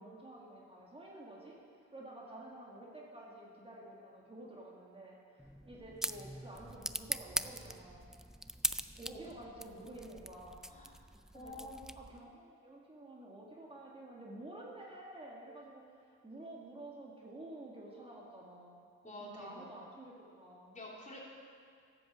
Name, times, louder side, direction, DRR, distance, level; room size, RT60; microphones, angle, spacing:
voice 1, 0.0-8.1 9.0-10.6 11.3-11.7 12.0-20.8, right 1 dB, 20° right, -3 dB, 2.0 m, -51 dB
sound 1, 5.4-12.3, equal, ahead, 0.3 m, -41 dB
voice 2, 11.3-11.8 19.0-19.7 20.7-21.2, left 1 dB, 25° left, -4 dB, 3.1 m, -48 dB
11.0 x 7.9 x 7.4 m, 2.2 s
cardioid pair, 90°, 30 cm